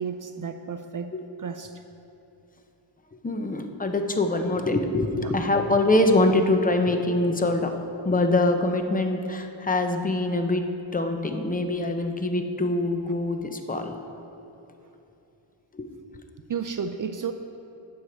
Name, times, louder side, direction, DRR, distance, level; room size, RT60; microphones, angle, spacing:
voice 1, 0.0-1.1 1.4-1.8 5.2-5.3 14.2-14.3 16.5-17.3, right 6 dB, 45° right, 8 dB, 0.4 m, -32 dB
voice 2, 3.2-7.7 8.0-10.6 10.9-13.9 15.7-15.9, left 2 dB, 20° left, 6 dB, 0.7 m, -24 dB
11.0 x 8.4 x 4.4 m, 2.9 s
wide cardioid pair, 110°, 46 cm